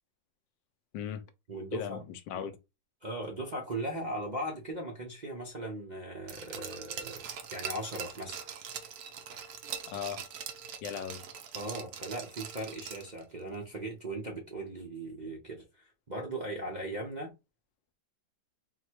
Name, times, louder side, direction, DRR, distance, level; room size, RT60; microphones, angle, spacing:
voice 1, 0.9-1.3 1.7-2.5 9.9-10.2 10.8-11.2, left 8 dB, 80° left, 1.3 m, -37 dB
voice 2, 1.5-2.0 3.0-7.2 7.5-8.4 11.5-17.3, right 1 dB, 40° right, 0.6 m, -38 dB
Glass, 6.3-13.2 13.5-13.6, right 8 dB, 65° right, 1.1 m, -42 dB
4.2 x 2.2 x 4.5 m
omnidirectional pair, 2.0 m